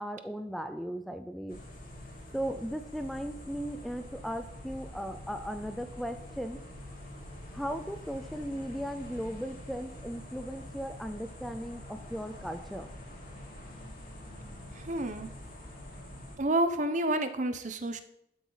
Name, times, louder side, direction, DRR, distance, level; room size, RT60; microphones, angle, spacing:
voice 1, 0.0-1.6 2.3-6.6 7.5-12.9, equal, ahead, 8 dB, 0.4 m, -37 dB
sound 1, 1.5-16.4, left 1 dB, 50° left, 3.0 m, -46 dB
voice 2, 14.7-15.3 16.4-18.0, right 1 dB, 45° right, 10 dB, 0.8 m, -29 dB
12.0 x 8.0 x 4.0 m, 0.78 s
head